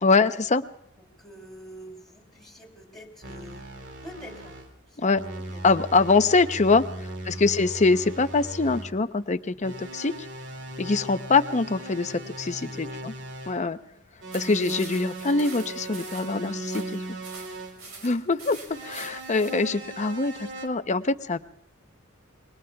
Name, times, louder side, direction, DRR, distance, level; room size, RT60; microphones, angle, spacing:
voice 1, 0.0-0.6 5.0-5.2 5.6-6.8 7.3-10.1 10.8-13.1 13.5-13.8 14.3-17.0 18.0-18.6 18.8-21.4, left 3 dB, 35° left, 10 dB, 0.7 m, -23 dB
voice 2, 1.0-3.7 4.0-4.6 4.9-5.6 6.3-6.6 6.9-7.4 12.6-13.3 13.8-14.0 17.8-18.0, equal, ahead, 2 dB, 3.1 m, -47 dB
sound 1, 3.2-4.7 5.1-8.9 9.6-13.7 14.2-17.8 18.7-20.7, right 1 dB, 60° right, 2.4 m, -38 dB
sound 2, 14.3-19.7, right 4 dB, 90° right, 4.9 m, -45 dB
27.5 x 22.0 x 2.3 m, 0.71 s
head